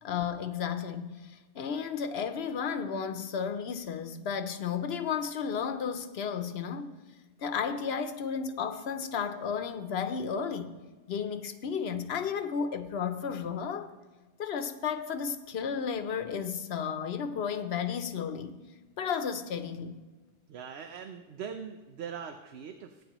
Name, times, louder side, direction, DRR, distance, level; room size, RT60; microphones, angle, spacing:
voice 1, 0.0-6.9 7.4-10.7 11.1-13.9 14.4-18.6 19.0-20.0, left 6 dB, 75° left, 1.0 m, -33 dB
voice 2, 20.5-23.0, right 7 dB, 80° right, 1.0 m, -41 dB
18.5 x 9.1 x 3.0 m
omnidirectional pair, 1.1 m